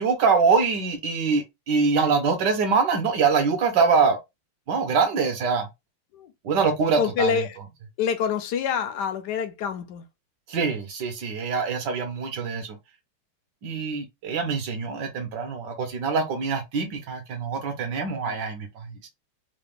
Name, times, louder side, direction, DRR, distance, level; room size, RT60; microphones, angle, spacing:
voice 1, 0.0-4.2 4.7-5.7 6.4-7.3 10.5-12.8 13.6-19.0, right 5 dB, 65° right, 1.4 m, -24 dB
voice 2, 7.0-7.6 8.0-10.0 18.2-18.4, left 7 dB, 70° left, 1.0 m, -26 dB
3.8 x 2.3 x 3.4 m
omnidirectional pair, 2.3 m